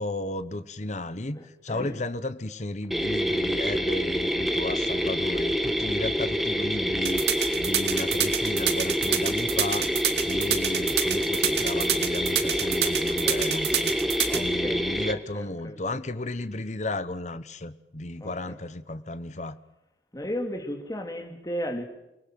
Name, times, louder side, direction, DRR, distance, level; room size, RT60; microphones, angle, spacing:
voice 1, 0.0-1.4 1.6-9.9 10.2-13.9 14.3-19.6, left 2 dB, 40° left, 1.1 m, -34 dB
voice 2, 1.3-2.0 14.3-15.8 18.2-18.3 20.1-21.8, equal, 20° left, 2.9 m, -35 dB
sound 1, 2.9-15.1, equal, ahead, 1.4 m, -27 dB
sound 2, 7.0-14.4, right 10 dB, 70° right, 2.6 m, -26 dB
29.0 x 19.5 x 7.7 m
head